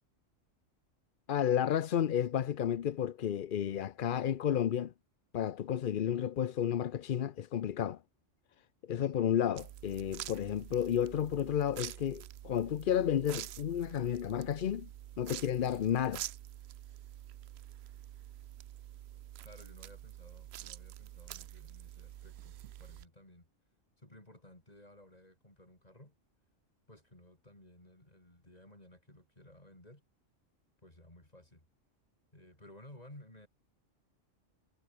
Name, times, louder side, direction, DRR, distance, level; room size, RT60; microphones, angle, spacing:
voice 1, 1.3-4.9 5.3-8.0 8.9-14.9 15.2-16.2, left 9 dB, 50° left, 0.7 m, -32 dB
sound 1, 9.6-23.1, right 12 dB, 65° right, 0.7 m, -47 dB
voice 2, 19.4-23.5 24.0-26.2 26.9-30.0 30.8-31.7 32.3-33.5, left 1 dB, 30° left, 5.6 m, -57 dB
omnidirectional pair, 1.3 m